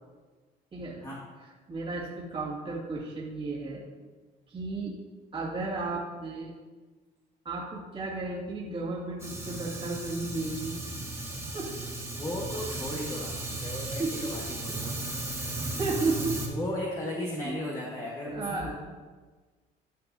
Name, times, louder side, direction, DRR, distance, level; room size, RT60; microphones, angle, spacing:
voice 1, 0.7-1.1 1.7-3.8 4.5-4.9 5.3-6.5 7.4-10.8 11.5-11.7 14.0-14.3 15.8-16.4 17.4-17.6 18.3-18.7, right 3 dB, 30° right, -5 dB, 2.2 m, -33 dB
Fire, 9.2-16.5, right 2 dB, 15° right, 2.0 m, -35 dB
voice 2, 12.1-15.1 16.5-18.7, left 1 dB, 20° left, -4 dB, 1.4 m, -36 dB
12.5 x 5.8 x 2.7 m, 1.4 s
cardioid pair, 110°, 17 cm